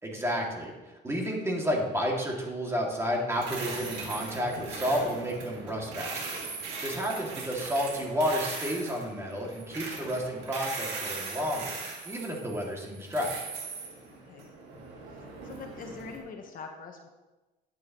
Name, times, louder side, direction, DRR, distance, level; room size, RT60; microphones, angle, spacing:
voice 1, 0.0-6.4 6.8-11.8 12.0-13.4, equal, 15° right, -1 dB, 2.3 m, -31 dB
sound 1, 3.3-16.2, right 4 dB, 85° right, 2.1 m, -39 dB
voice 2, 15.4-17.1, left 4 dB, 55° left, 3 dB, 1.2 m, -43 dB
11.0 x 8.9 x 3.0 m, 1.1 s
cardioid pair, 110°, 17 cm